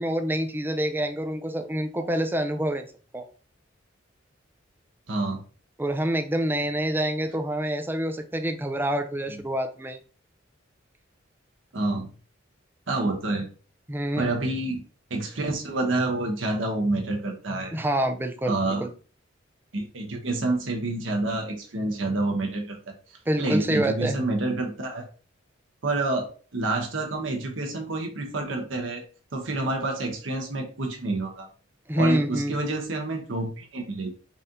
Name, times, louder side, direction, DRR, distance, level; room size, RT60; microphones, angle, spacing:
voice 1, 0.0-2.9 3.1-3.3 5.8-10.0 13.9-14.3 17.7-18.5 18.8-18.9 23.3-24.2 31.9-32.6, right 1 dB, 10° right, 6 dB, 0.4 m, -26 dB
voice 2, 5.1-5.4 11.7-12.1 12.9-13.5 14.2-14.8 15.1-17.7 18.4-18.9 19.7-22.9 23.4-25.0 25.8-26.3 26.5-29.0 29.3-31.5 31.9-34.1, right 2 dB, 70° right, 2 dB, 0.9 m, -28 dB
4.1 x 2.7 x 3.7 m, 0.37 s
head